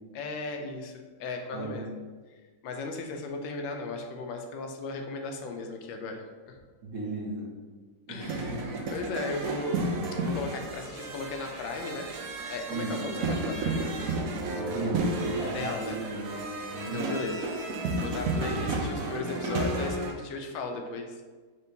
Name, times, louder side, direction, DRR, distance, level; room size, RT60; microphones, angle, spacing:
voice 1, 0.1-2.0 2.3-2.4 2.6-6.6 8.1-8.6 8.9-9.9 10.2-12.1 12.5-13.9 15.5-16.0 16.9-21.2, left 3 dB, 85° left, 3 dB, 1.3 m, -36 dB
voice 2, 1.5-1.8 6.8-7.5 8.1-8.8 9.1-9.2 12.7-13.5 14.5-16.4 16.7-17.1 18.5-19.0, right 2 dB, 55° right, -5 dB, 1.3 m, -36 dB
sound 1, 8.2-20.1, right 2 dB, 80° right, 0.7 m, -32 dB
sound 2, 10.6-11.0 11.6-11.9 12.7-13.0 13.8-14.1 14.8-15.2 15.6-16.4 16.6-20.4, equal, 30° right, 1.6 m, -49 dB
4.3 x 3.6 x 2.6 m, 1.4 s
omnidirectional pair, 2.0 m